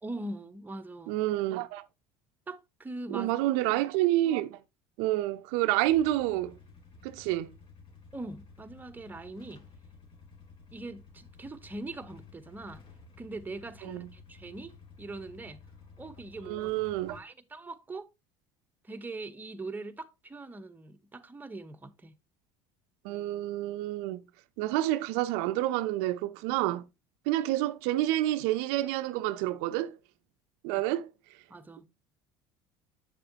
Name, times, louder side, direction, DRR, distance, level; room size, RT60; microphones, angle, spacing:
voice 1, 0.0-1.2 2.5-3.3 8.1-9.7 10.7-12.8 13.2-15.6 16.0-16.7 17.1-18.1 18.8-22.2 31.5-31.9, right 2 dB, 15° right, 0.9 m, -42 dB
voice 2, 1.1-1.8 3.1-4.6 5.0-6.5 7.0-7.5 13.8-14.1 16.5-17.2 23.0-24.2 24.6-26.8 27.3-30.0 30.6-31.1, right 15 dB, 80° right, 0.6 m, -28 dB
Motorcycle / Engine starting / Idling, 5.8-17.2, left 4 dB, 45° left, 2.9 m, -53 dB
8.1 x 6.7 x 2.8 m
supercardioid pair, 95°, 12 cm